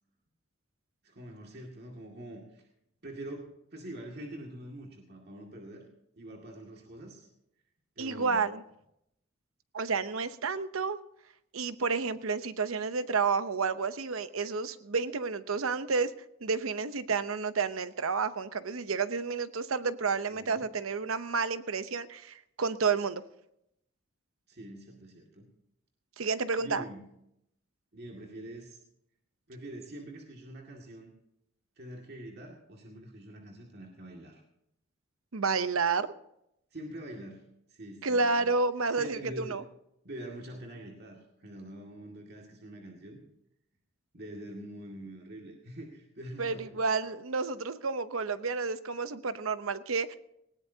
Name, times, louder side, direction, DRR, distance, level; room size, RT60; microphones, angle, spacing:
voice 1, 1.0-2.6 3.0-5.9 6.2-7.3 8.0-8.5 20.3-20.6 24.5-25.5 26.6-27.1 27.9-28.8 29.5-31.1 31.8-34.4 36.7-38.5 38.9-39.6 40.0-43.2 44.1-46.8, right 1 dB, 50° right, -1 dB, 2.1 m, -45 dB
voice 2, 8.0-8.6 9.7-11.0 11.5-16.1 16.4-23.2 26.2-26.8 35.3-36.1 38.0-39.6 46.4-50.2, right 4 dB, 85° right, 12 dB, 0.8 m, -30 dB
19.0 x 18.0 x 2.8 m, 0.78 s
head